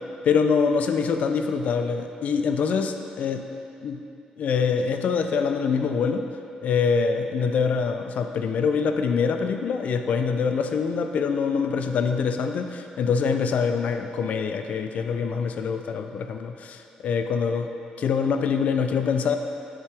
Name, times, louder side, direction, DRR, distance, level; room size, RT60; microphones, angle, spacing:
voice 1, 0.2-3.4 3.8-4.0 4.4-6.2 6.6-17.7 18.0-19.4, left 5 dB, 60° left, 7 dB, 0.4 m, -24 dB
7.3 x 5.0 x 3.5 m, 2.6 s
cardioid pair, 110°, 3 cm